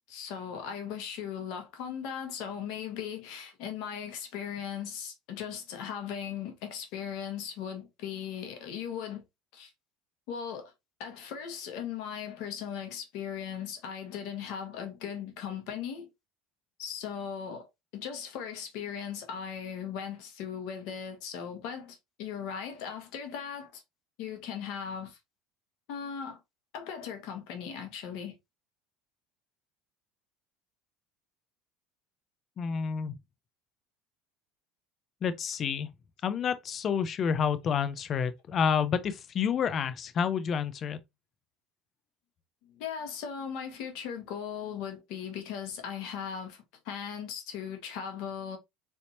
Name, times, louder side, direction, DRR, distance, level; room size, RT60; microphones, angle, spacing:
voice 1, 0.0-9.2 9.5-9.7 10.3-10.7 11.0-16.1 16.8-23.8 24.2-25.2 25.9-26.4 26.7-28.3 42.6-48.6, left 8 dB, 70° left, 1.4 m, -38 dB
voice 2, 32.6-33.2 35.2-35.9 36.2-41.0, left 7 dB, 45° left, 0.7 m, -29 dB
4.1 x 3.5 x 2.7 m
hypercardioid pair, 90°, 0 cm